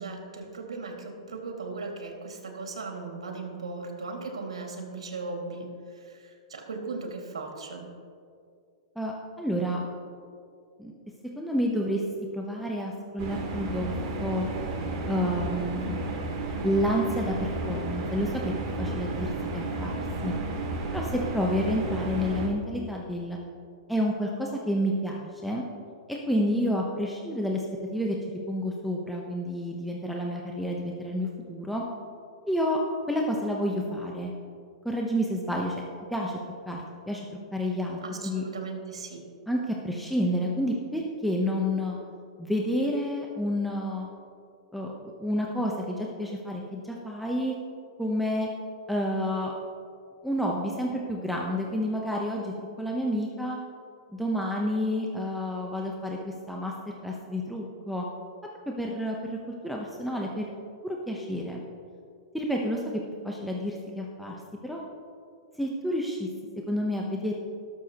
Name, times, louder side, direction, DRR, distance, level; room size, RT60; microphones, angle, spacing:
voice 1, 0.0-7.9 38.0-39.2, right 3 dB, 90° right, 2 dB, 2.3 m, -37 dB
voice 2, 9.0-9.8 10.8-10.9 11.4-12.0 12.3-13.9 14.2-14.5 15.1-16.1 16.6-18.5 18.8-20.3 20.9-23.4 23.9-25.6 26.1-27.6 27.9-28.2 28.5-31.8 32.4-32.8 33.1-34.3 34.8-35.8 36.1-36.4 36.7-37.2 37.5-38.4 39.5-42.0 42.4-44.1 44.7-47.5 48.0-48.5 48.9-49.5 50.2-53.6 54.1-58.0 58.8-59.4 59.6-60.5 60.8-61.6 62.3-64.8 65.6-66.3 66.7-67.3, equal, ahead, -2 dB, 1.0 m, -29 dB
sound 1, 13.2-22.5, right 2 dB, 40° right, 2.4 m, -32 dB
18.5 x 7.1 x 3.0 m, 2.4 s
hypercardioid pair, 125°, 3 cm